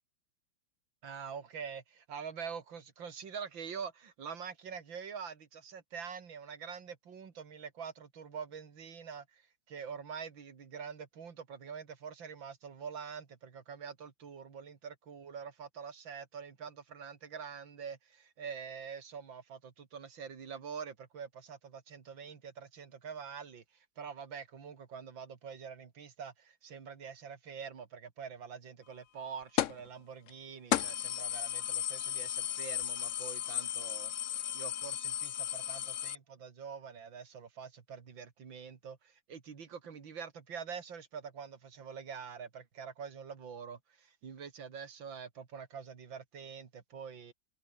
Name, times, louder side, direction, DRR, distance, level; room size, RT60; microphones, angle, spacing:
voice 1, 1.0-23.6 24.0-34.1 34.5-47.3, right 6 dB, 80° right, 3.1 m, -45 dB
sound 1, 29.6-29.9 30.3-30.4 30.7-36.2, left 11 dB, 65° left, 0.8 m, -35 dB
omnidirectional pair, 2.1 m